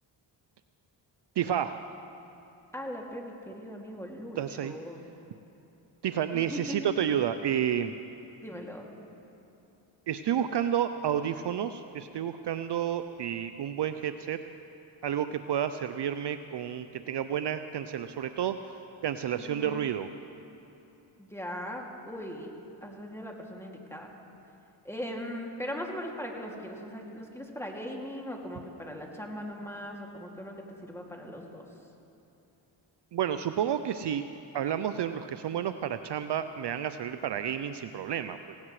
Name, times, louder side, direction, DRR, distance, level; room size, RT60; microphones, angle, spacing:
voice 1, 1.4-1.7 4.4-4.7 6.0-8.0 10.1-14.4 15.0-18.5 19.0-20.1 33.1-34.2 34.5-38.4, right 9 dB, 55° right, 10 dB, 0.6 m, -30 dB
voice 2, 2.7-5.0 6.3-6.9 8.4-8.9 19.4-19.9 21.2-24.1 24.8-30.5 30.8-31.7, equal, 5° left, 0 dB, 2.4 m, -39 dB
19.0 x 17.0 x 3.2 m, 2.9 s
cardioid pair, 50°, 50 cm